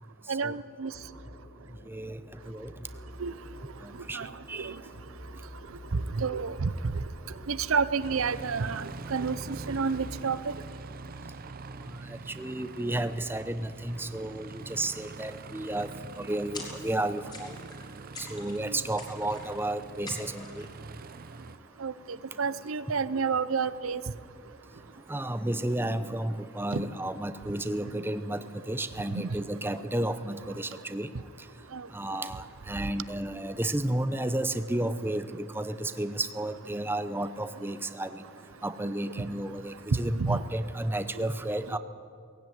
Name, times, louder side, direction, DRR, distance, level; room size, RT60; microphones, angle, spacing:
voice 1, 0.3-0.9 3.2-3.3 4.1-4.3 4.6-4.8 5.9-6.7 7.5-10.5 18.7-18.8 21.8-21.9 22.4-24.0 26.7-26.8 29.1-29.3 31.7-31.9 40.1-40.4, right 5 dB, 80° right, 16 dB, 0.7 m, -29 dB
Musical instrument, 0.9-10.2, equal, 70° left, 6.2 m, -48 dB
voice 2, 1.9-2.2 2.5-2.7 4.1-4.2 4.5-4.7 12.4-15.9 16.2-17.5 18.3-20.7 25.1-31.1 31.9-38.1 38.6-41.8, right 1 dB, 10° right, 11 dB, 0.7 m, -32 dB
Aircraft, 8.0-21.6, right 3 dB, 45° right, 0.7 m, -44 dB
sound 1, 16.5-17.0 17.3-17.8 18.1-18.6 19.0-19.6 20.1-20.7, left 2 dB, 20° left, 3.9 m, -44 dB
18.5 x 16.5 x 9.4 m, 2.2 s
head